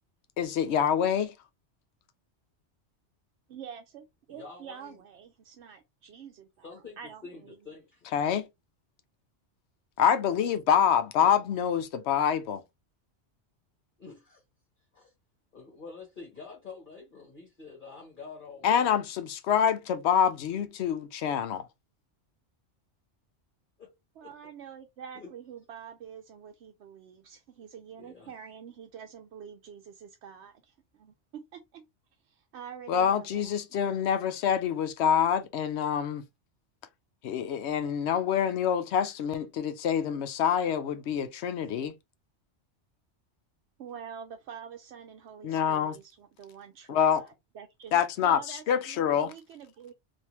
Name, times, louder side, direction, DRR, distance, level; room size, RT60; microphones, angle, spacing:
voice 1, 0.4-1.3 8.1-8.5 10.0-12.6 18.6-21.7 32.9-36.2 37.2-41.9 45.4-46.0 46.9-47.3 47.9-49.3, left 8 dB, 75° left, 0.8 m, -26 dB
voice 2, 3.5-7.6 24.2-31.9 32.2-33.5 43.8-49.9, right 8 dB, 75° right, 0.8 m, -46 dB
voice 3, 4.3-5.0 6.6-8.1 11.2-11.3 14.0-14.4 14.9-15.1 15.5-18.9 23.8-23.9 24.2-24.3 25.1-25.3 28.0-28.3, left 4 dB, 45° left, 1.4 m, -47 dB
3.4 x 2.6 x 2.9 m
omnidirectional pair, 1.2 m